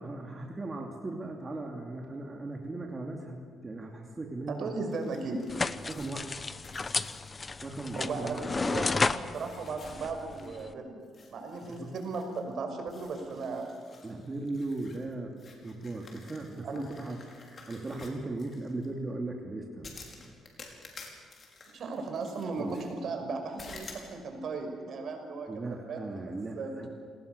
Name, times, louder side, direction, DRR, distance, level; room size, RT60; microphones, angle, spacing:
voice 1, 0.0-4.7 5.9-6.3 7.6-8.6 11.7-11.9 14.0-17.2 17.7-20.0 20.2-20.3 22.6-22.8 25.5-26.9, right 2 dB, 30° right, 1 dB, 2.8 m, -38 dB
voice 2, 4.5-5.4 7.9-11.0 11.3-13.7 16.6-16.8 21.7-26.9, right 4 dB, 60° right, 5 dB, 5.6 m, -36 dB
sound 1, 4.9-9.0 9.3-10.7 11.0-12.5 12.9-18.9 19.8-22.9 23.6-24.1, left 4 dB, 45° left, 5.3 m, -52 dB
sound 2, 5.5-10.7, left 3 dB, 30° left, 0.9 m, -33 dB
28.5 x 19.5 x 6.9 m, 2.1 s
cardioid pair, 90°, 0 cm